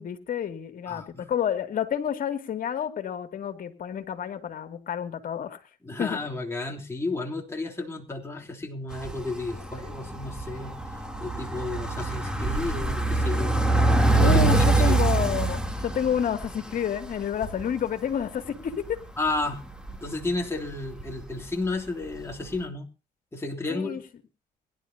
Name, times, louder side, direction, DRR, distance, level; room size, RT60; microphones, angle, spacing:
voice 1, 0.0-5.6 6.0-6.2 14.2-19.0 23.7-24.0, left 8 dB, 60° left, 7 dB, 2.6 m, -29 dB
voice 2, 0.9-1.3 5.8-10.8 11.2-13.6 14.1-15.0 19.2-19.6 20.0-22.9 23.3-24.0, left 2 dB, 15° left, -1 dB, 3.3 m, -32 dB
sound 1, 8.9-17.8 18.1-18.2 18.5-20.3 20.7-21.4 21.6-21.7 22.3-22.4, right 2 dB, 5° right, 3.3 m, -25 dB
22.5 x 11.5 x 2.9 m, 0.33 s
cardioid pair, 90°, 16 cm